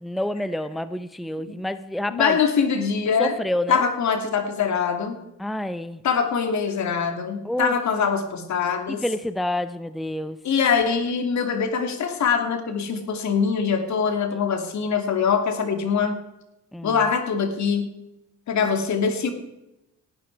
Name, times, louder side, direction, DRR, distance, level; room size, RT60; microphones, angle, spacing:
voice 1, 0.0-2.4 3.2-3.8 5.4-6.0 7.4-7.7 9.0-10.4 16.7-17.0, left 1 dB, ahead, 12 dB, 0.7 m, -28 dB
voice 2, 2.1-3.4 3.7-5.2 6.0-9.0 10.4-16.1 16.8-17.9 18.5-19.3, left 6 dB, 65° left, 7 dB, 2.6 m, -23 dB
18.0 x 11.5 x 4.7 m, 0.91 s
cardioid pair, 90°, 30 cm